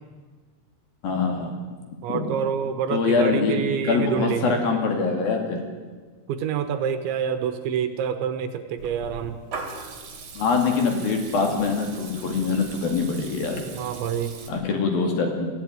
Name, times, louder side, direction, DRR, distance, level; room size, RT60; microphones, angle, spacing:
voice 1, 1.0-1.5 2.1-2.2 2.9-3.6 3.8-5.6 10.4-13.6 14.5-15.5, left 4 dB, 55° left, 3 dB, 3.8 m, -24 dB
voice 2, 2.0-4.5 6.3-9.4 13.8-14.3, right 8 dB, 75° right, 9 dB, 3.3 m, -27 dB
Water tap faucet / Liquid, 8.8-14.5, right 4 dB, 40° right, 3.0 m, -40 dB
22.5 x 15.0 x 9.2 m, 1.4 s
omnidirectional pair, 5.7 m